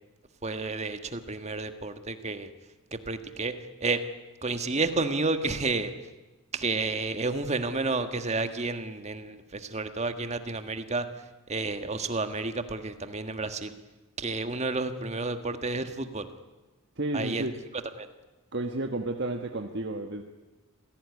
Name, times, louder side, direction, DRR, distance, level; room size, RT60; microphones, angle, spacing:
voice 1, 0.4-2.5 2.9-3.5 3.8-4.0 4.4-5.9 6.5-11.0 11.5-13.8 14.2-16.3 17.1-17.5 18.0-18.1, right 3 dB, 30° right, 9 dB, 1.6 m, -30 dB
voice 2, 17.0-17.6 18.5-20.2, right 2 dB, 55° right, 4 dB, 1.4 m, -31 dB
27.0 x 17.0 x 9.7 m, 1.2 s
head